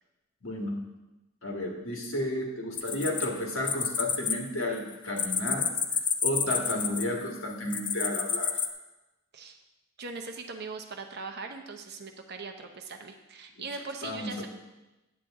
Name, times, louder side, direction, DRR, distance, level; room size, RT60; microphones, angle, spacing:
voice 1, 0.4-0.8 1.4-8.6 14.0-14.4, left 1 dB, 75° left, 0 dB, 1.7 m, -32 dB
sound 1, 2.8-4.3 4.6-7.2 7.7-8.7, left 6 dB, 25° left, 0.4 m, -29 dB
voice 2, 10.0-14.5, right 4 dB, 55° right, 5 dB, 0.8 m, -40 dB
8.9 x 7.6 x 3.7 m, 1.0 s
head